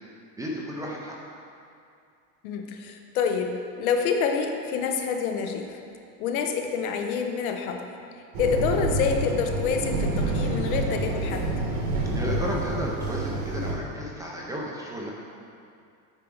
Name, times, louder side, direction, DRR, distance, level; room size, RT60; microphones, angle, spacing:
voice 1, 0.4-1.2 12.1-15.1, equal, 10° right, -4 dB, 0.4 m, -33 dB
voice 2, 2.4-5.8 6.2-7.9 8.4-11.5, left 6 dB, 75° left, 5 dB, 0.9 m, -27 dB
sound 1, 8.3-13.7, right 2 dB, 55° right, 1.5 m, -28 dB
9.0 x 4.6 x 3.8 m, 2.4 s
supercardioid pair, 145°, 43 cm